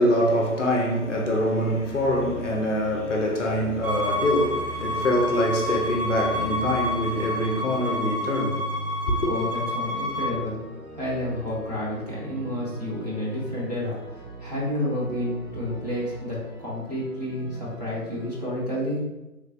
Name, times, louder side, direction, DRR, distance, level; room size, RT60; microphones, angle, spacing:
voice 1, 0.0-8.6 9.1-9.2, equal, 55° left, 0.5 m, -24 dB
sound 1, 1.0-18.5, right 1 dB, 30° left, 1.1 m, -40 dB
Bowed string instrument, 3.8-10.4, left 1 dB, 60° right, 1.1 m, -29 dB
voice 2, 9.3-10.6 11.0-19.0, left 1 dB, 25° right, 0.6 m, -30 dB
3.2 x 2.3 x 2.3 m
figure-of-eight pair, 150°, 46 cm